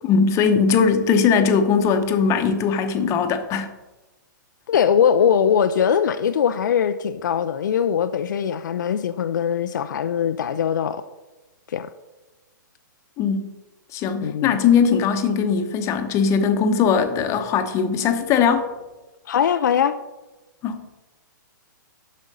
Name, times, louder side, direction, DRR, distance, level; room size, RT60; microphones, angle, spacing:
voice 1, 0.0-3.7 13.2-13.5 13.9-18.6 20.6-20.8, left 6 dB, 25° left, 0.9 m, -20 dB
voice 2, 4.7-11.0 11.7-11.9 14.2-14.6 19.3-19.9, left 8 dB, 65° left, 0.5 m, -21 dB
8.1 x 6.3 x 5.4 m
hypercardioid pair, 120°, 11 cm